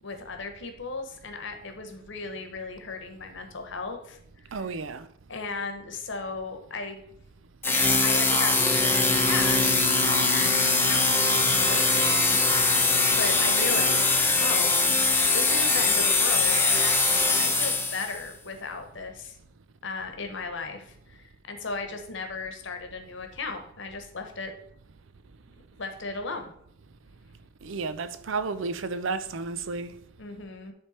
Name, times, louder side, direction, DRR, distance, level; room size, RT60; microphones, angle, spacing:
voice 1, 0.0-4.2 4.5-4.6 5.3-7.0 7.7-12.7 13.2-14.1 14.4-14.8 15.3-19.4 19.8-24.5 25.8-26.5 30.2-30.7, left 3 dB, 70° left, 1.2 m, -36 dB
voice 2, 4.5-5.1 27.6-30.0, right 4 dB, 70° right, 0.5 m, -32 dB
sound 1, 7.6-18.2, left 3 dB, 10° left, 0.9 m, -22 dB
sound 2, 8.5-14.0, left 3 dB, 25° right, 2.4 m, -36 dB
10.0 x 3.5 x 4.3 m
head